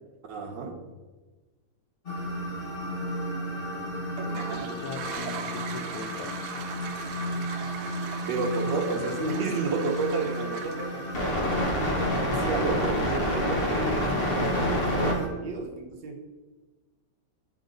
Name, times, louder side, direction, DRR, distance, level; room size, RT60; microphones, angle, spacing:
voice 1, 0.3-0.9 8.3-11.1 12.2-16.2, right 3 dB, 65° right, 3 dB, 1.3 m, -31 dB
sound 1, 2.1-15.3, equal, 40° left, 0.9 m, -30 dB
Toilet flush, 4.1-13.0, right 7 dB, 90° right, 1.5 m, -40 dB
voice 2, 4.3-6.4, left 4 dB, 90° left, 7 dB, 1.6 m, -40 dB
9.3 x 3.6 x 3.8 m, 1.3 s
omnidirectional pair, 2.3 m